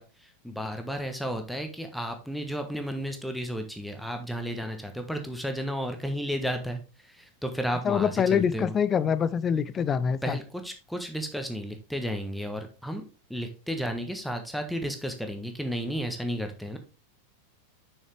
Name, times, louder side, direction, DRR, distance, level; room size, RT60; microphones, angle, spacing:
voice 1, 0.0-8.7 10.2-13.0 13.3-16.8, equal, ahead, 5 dB, 1.3 m, -33 dB
voice 2, 7.8-10.4, left 7 dB, 25° left, 15 dB, 0.4 m, -25 dB
6.4 x 6.3 x 3.3 m, 0.34 s
figure-of-eight pair, 90°, 0 cm